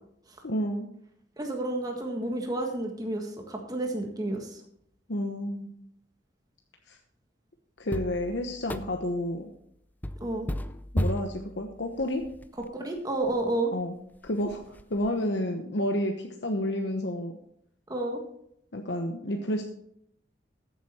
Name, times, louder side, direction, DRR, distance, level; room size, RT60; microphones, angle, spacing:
voice 1, 0.4-0.9 5.1-5.7 6.9-7.0 7.8-9.5 10.9-12.2 13.7-14.0 14.2-17.4 18.7-19.6, left 1 dB, 70° left, 3 dB, 1.1 m, -30 dB
voice 2, 1.4-4.6 10.2-10.5 12.7-13.7 17.9-18.2, right 2 dB, 20° right, 2 dB, 1.6 m, -30 dB
sound 1, 7.9-9.3 10.0-12.7 13.3-13.4 13.8-13.9 14.2-15.1, equal, 10° left, 0.4 m, -34 dB
14.0 x 8.2 x 4.4 m, 0.72 s
head